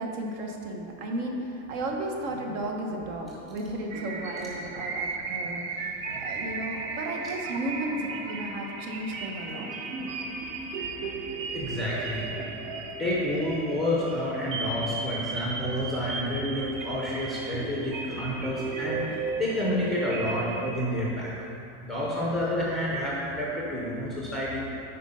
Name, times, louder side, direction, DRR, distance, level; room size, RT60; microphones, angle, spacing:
voice 1, 0.0-9.7, right 1 dB, 60° right, 1 dB, 1.2 m, -34 dB
sound 1, 3.9-20.8, right 4 dB, 80° right, 1.1 m, -35 dB
voice 2, 11.5-12.3 13.0-21.3 21.8-24.6, left 1 dB, ahead, -5 dB, 0.5 m, -29 dB
9.0 x 4.4 x 5.5 m, 2.8 s
supercardioid pair, 175°, 40 cm